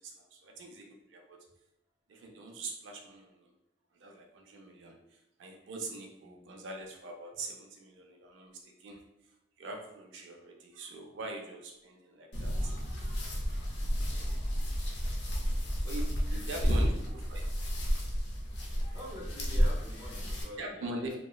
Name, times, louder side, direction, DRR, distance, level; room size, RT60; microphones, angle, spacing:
voice 1, 0.0-1.4 2.1-3.5 4.0-9.0 9.6-12.7 14.1-14.4 15.8-16.9 17.3-17.4 20.6-21.2, right 2 dB, 80° right, 2 dB, 0.4 m, -43 dB
voice 2, 6.2-6.6 13.8-14.7 16.3-16.9 18.9-21.2, left 1 dB, 15° right, -3 dB, 0.5 m, -47 dB
sound 1, 12.3-20.4, equal, 65° left, 0.5 m, -31 dB
2.9 x 2.0 x 2.2 m, 0.87 s
head